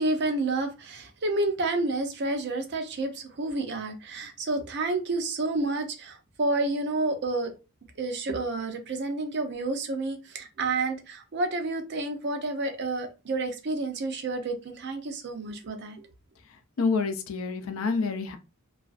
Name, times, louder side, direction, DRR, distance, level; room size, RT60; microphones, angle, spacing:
voice 1, 0.0-7.5 8.0-16.0, right 2 dB, 55° right, 6 dB, 0.5 m, -30 dB
voice 2, 16.8-18.4, left 4 dB, 70° left, 8 dB, 0.5 m, -27 dB
2.4 x 2.3 x 2.4 m, 0.28 s
head